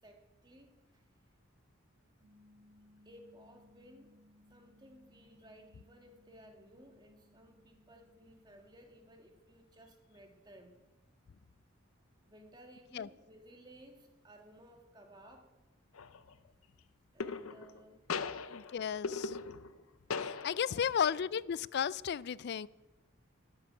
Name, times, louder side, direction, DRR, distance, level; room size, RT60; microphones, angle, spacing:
voice 1, 0.0-1.0 3.0-4.1 4.5-10.7 12.3-15.5 17.1-18.6 20.7-21.2, equal, 20° right, 3 dB, 1.8 m, -58 dB
sound 1, 2.2-8.6, left 1 dB, 80° right, 3.8 m, -65 dB
sound 2, 15.9-16.3 17.2-17.8 18.1-19.8 20.1-20.9, left 4 dB, 80° left, 0.7 m, -39 dB
voice 2, 18.5-19.4 20.1-22.7, left 8 dB, 50° left, 20 dB, 0.3 m, -34 dB
13.0 x 8.0 x 9.6 m, 1.1 s
head